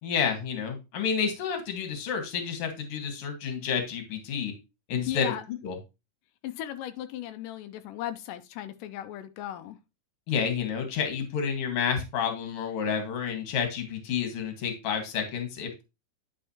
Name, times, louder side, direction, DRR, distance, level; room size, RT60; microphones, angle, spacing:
voice 1, 0.0-4.5 4.9-5.3 5.6-5.8 10.3-15.8, left 6 dB, 50° left, 2.2 m, -30 dB
voice 2, 5.1-5.4 6.4-9.8, left 11 dB, 90° left, 2.2 m, -36 dB
10.0 x 5.2 x 2.8 m
omnidirectional pair, 3.7 m